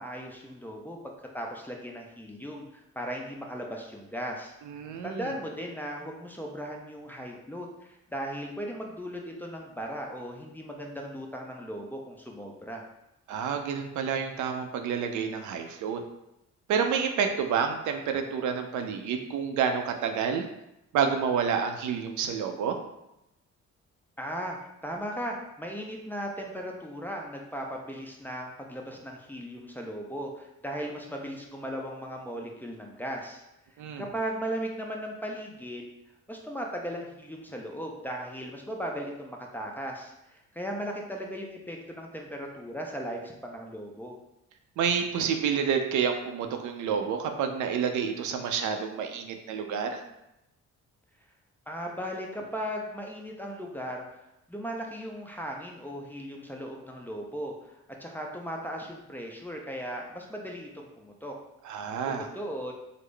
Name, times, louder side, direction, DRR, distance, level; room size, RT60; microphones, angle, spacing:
voice 1, 0.0-4.6 5.0-12.8 24.2-24.6 24.8-33.4 34.0-35.9 36.3-44.2 51.7-54.2 54.5-61.3 62.0-62.7, equal, 5° left, 0 dB, 0.5 m, -37 dB
voice 2, 4.7-5.3 13.3-16.0 16.7-20.4 20.9-22.8 33.8-34.0 44.8-50.0 61.6-62.3, right 7 dB, 75° right, 5 dB, 0.5 m, -29 dB
3.7 x 2.0 x 3.2 m, 0.88 s
cardioid pair, 90°, 30 cm